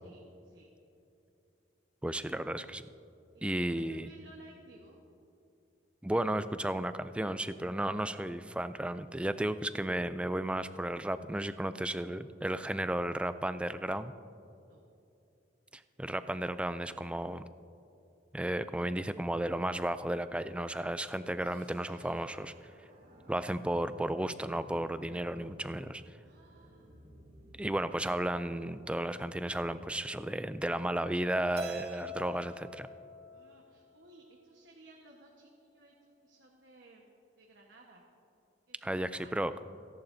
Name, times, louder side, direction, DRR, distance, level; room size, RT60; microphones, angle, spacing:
voice 1, 0.0-0.7 3.3-5.0 14.6-14.8 26.2-27.1 33.3-35.9 36.2-38.0 38.7-39.5, right 2 dB, 75° right, -1 dB, 1.3 m, -58 dB
voice 2, 2.0-2.8 3.4-4.1 6.0-14.1 16.0-17.4 18.3-22.5 23.3-26.0 27.6-32.9 38.8-39.5, right 1 dB, 5° right, 12 dB, 0.3 m, -33 dB
sound 1, 21.4-32.5, equal, 55° right, 2.7 m, -59 dB
Keyboard (musical), 31.6-33.9, equal, 40° right, 1.6 m, -44 dB
29.5 x 11.0 x 2.7 m, 2.7 s
head